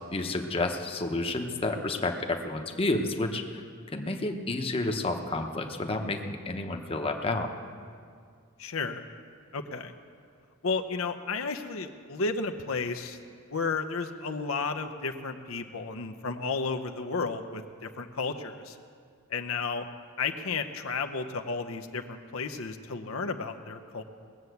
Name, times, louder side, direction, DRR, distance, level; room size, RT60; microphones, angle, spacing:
voice 1, 0.1-3.6 3.9-7.5, left 2 dB, 30° left, 4 dB, 0.9 m, -30 dB
voice 2, 8.6-9.0 9.5-9.9 10.6-13.2 13.5-18.8 19.3-19.8 20.2-24.0, left 4 dB, 85° left, 5 dB, 0.8 m, -33 dB
19.5 x 7.1 x 8.0 m, 2.2 s
head